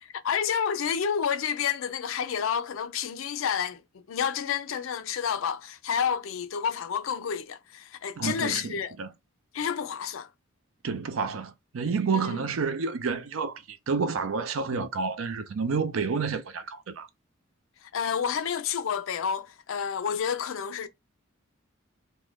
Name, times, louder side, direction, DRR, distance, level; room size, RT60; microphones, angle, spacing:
voice 1, 0.0-3.8 4.1-8.9 9.5-10.3 12.1-12.4 17.9-20.9, left 7 dB, 70° left, 0.4 m, -29 dB
voice 2, 8.2-9.1 10.8-17.1, right 5 dB, 75° right, 0.5 m, -29 dB
2.5 x 2.1 x 3.2 m
head